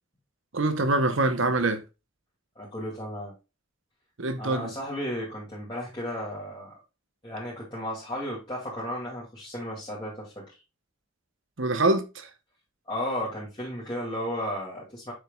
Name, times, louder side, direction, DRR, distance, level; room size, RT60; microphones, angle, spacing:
voice 1, 0.5-1.8 4.2-4.7 11.6-12.3, right 2 dB, 60° right, 1.0 m, -25 dB
voice 2, 2.6-3.3 4.4-6.8 7.2-10.4 12.9-15.1, equal, 20° left, 2.4 m, -34 dB
7.4 x 6.5 x 2.4 m
head